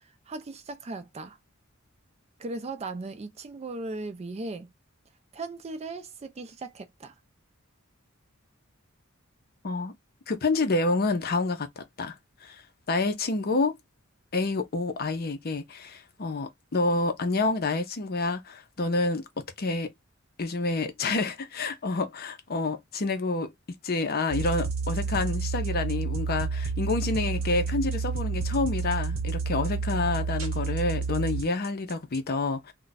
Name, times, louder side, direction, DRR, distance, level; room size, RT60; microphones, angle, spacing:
voice 1, 0.3-1.4 2.4-4.7 5.3-7.1, right 3 dB, 30° right, 0.4 m, -37 dB
voice 2, 10.3-12.1 12.4-12.6 12.9-13.8 14.3-19.2 19.6-19.9 20.4-23.5 23.8-32.7, left 3 dB, 45° left, 0.6 m, -28 dB
sound 1, 24.3-32.2, right 4 dB, 75° right, 1.0 m, -30 dB
2.4 x 2.2 x 3.9 m
head